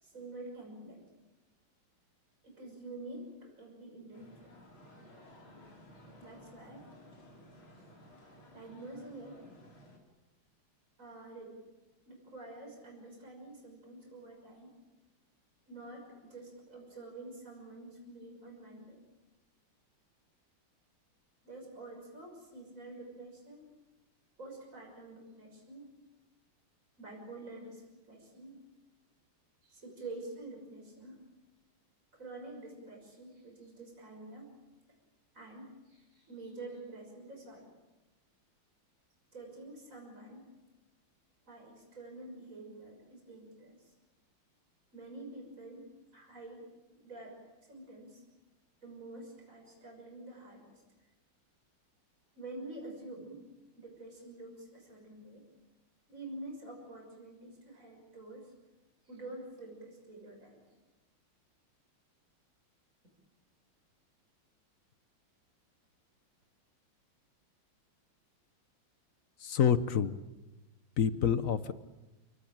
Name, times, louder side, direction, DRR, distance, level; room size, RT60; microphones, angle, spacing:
voice 1, 0.0-1.0 2.4-4.5 6.2-6.9 8.5-9.4 11.0-11.6 12.1-14.7 15.7-19.0 21.4-23.7 24.4-25.9 27.0-28.6 29.6-31.2 32.1-34.5 35.3-37.7 39.3-40.5 41.5-43.9 44.9-45.9 46.1-48.2 48.8-50.7 51.0-51.1 52.4-53.4 53.7-55.4 56.1-58.5 59.0-60.6, right 2 dB, 35° right, 0 dB, 6.6 m, -48 dB
sound 1, 4.1-10.0, left 1 dB, 70° left, 5.1 m, -56 dB
voice 2, 69.4-70.2 71.0-71.7, left 8 dB, 50° left, 13 dB, 1.1 m, -27 dB
29.0 x 18.5 x 8.9 m, 1.1 s
omnidirectional pair, 2.3 m